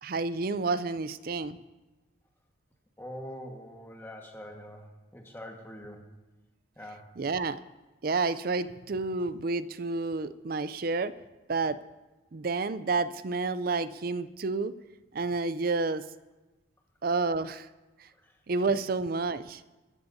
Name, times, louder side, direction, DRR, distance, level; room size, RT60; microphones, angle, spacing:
voice 1, 0.0-1.6 7.2-7.6 8.0-11.1 11.5-11.8 12.3-14.7 15.1-16.0 17.0-17.7 18.5-19.6, right 3 dB, 45° right, 14 dB, 0.4 m, -30 dB
voice 2, 3.0-4.9 5.1-6.1 6.8-7.1 18.2-18.4, equal, 10° left, 1 dB, 1.5 m, -44 dB
21.5 x 14.0 x 2.7 m, 1.1 s
head